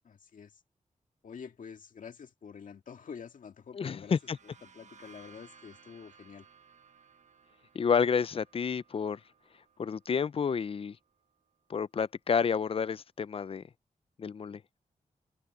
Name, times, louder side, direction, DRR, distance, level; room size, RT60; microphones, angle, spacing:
voice 1, 0.0-0.6 1.2-4.2 4.4-6.5, left 6 dB, 75° left, 2.2 m, -47 dB
voice 2, 3.8-4.4 7.7-9.2 9.8-11.0 11.7-13.6 14.2-14.6, left 6 dB, 45° left, 0.5 m, -30 dB
sound 1, 3.8-11.4, right 6 dB, 60° right, 1.3 m, -60 dB
wide cardioid pair, 95°, 14 cm